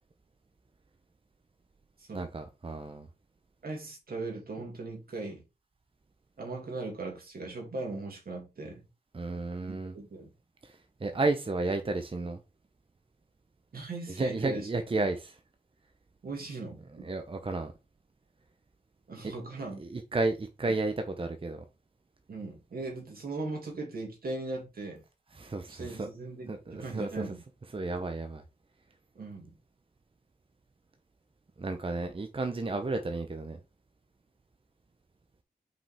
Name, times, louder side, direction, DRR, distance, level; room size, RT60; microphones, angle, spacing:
voice 1, 2.1-3.1 9.1-9.9 10.6-12.4 14.2-15.4 17.0-17.7 19.2-19.3 19.8-21.6 25.3-26.1 26.5-27.2 27.7-28.4 31.6-33.6, right 3 dB, 35° right, 0.8 m, -32 dB
voice 2, 3.6-5.4 6.4-8.8 9.7-10.3 13.7-14.7 16.2-17.1 19.1-19.9 22.3-25.0 25.7-27.4 29.1-29.5, right 3 dB, 70° right, 2.6 m, -39 dB
5.4 x 5.3 x 3.5 m
cardioid pair, 60°, 16 cm